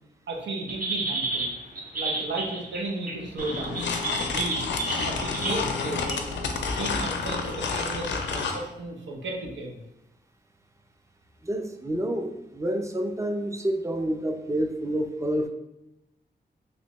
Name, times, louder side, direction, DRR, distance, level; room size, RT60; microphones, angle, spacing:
voice 1, 0.3-1.5 1.9-3.9 4.2-4.6 5.1-9.8, right 2 dB, 90° right, 0 dB, 0.7 m, -34 dB
sound 1, 0.7-5.6 6.1-6.4 6.9-7.0, right 2 dB, 50° right, 0.8 m, -31 dB
sound 2, 3.4-8.6, left 4 dB, 90° left, 0.4 m, -30 dB
voice 2, 11.4-15.5, right 1 dB, 15° right, 5 dB, 0.4 m, -28 dB
3.2 x 2.7 x 2.9 m, 0.88 s
cardioid pair, 80°, 18 cm